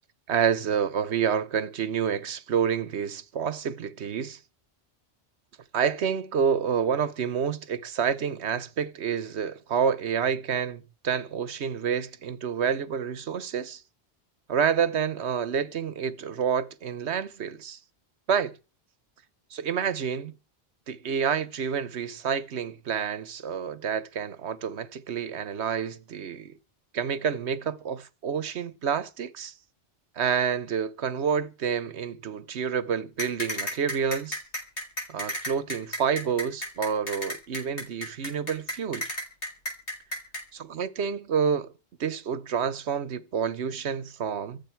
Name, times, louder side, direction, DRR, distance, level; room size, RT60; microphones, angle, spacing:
voice 1, 0.3-4.4 5.7-13.8 14.5-17.8 18.3-18.5 19.5-20.3 20.9-26.5 26.9-29.5 30.2-34.4 35.1-39.0 40.5-41.7 42.0-44.6, right 7 dB, 75° right, 1.2 m, -28 dB
sound 1, 33.2-40.4, equal, 75° left, 4.8 m, -32 dB
25.5 x 8.5 x 4.6 m
omnidirectional pair, 1.1 m